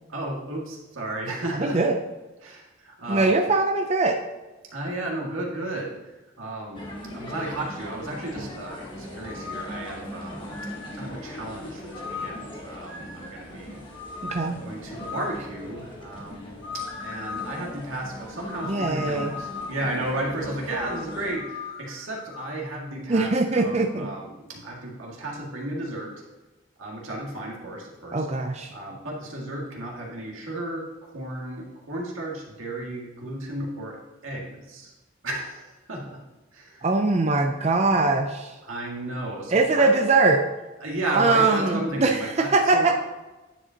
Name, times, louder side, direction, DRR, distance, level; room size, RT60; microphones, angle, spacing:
voice 1, 0.1-1.8 2.4-3.4 4.7-6.0 6.4-10.6 10.9-13.8 14.4-26.1 26.8-28.3 28.7-34.0 34.2-34.9 35.2-36.2 36.5-36.9 38.6-40.0 40.8-42.9, right 1 dB, 90° right, -2 dB, 2.1 m, -34 dB
voice 2, 1.6-2.0 3.1-4.2 14.2-14.6 18.6-19.3 23.1-24.1 28.1-28.7 36.8-38.6 39.5-40.4 41.1-42.9, right 3 dB, 35° right, 4 dB, 0.5 m, -22 dB
sound 1, 6.7-21.4, left 1 dB, 25° left, 1.3 m, -40 dB
sound 2, 9.2-9.8 10.5-11.0 11.9-12.5 12.9-13.4 13.9-14.5 15.0-15.4 16.6-17.6 18.5-19.8 20.7-22.6, left 5 dB, 70° left, 1.2 m, -38 dB
10.0 x 7.7 x 2.9 m, 1.1 s
head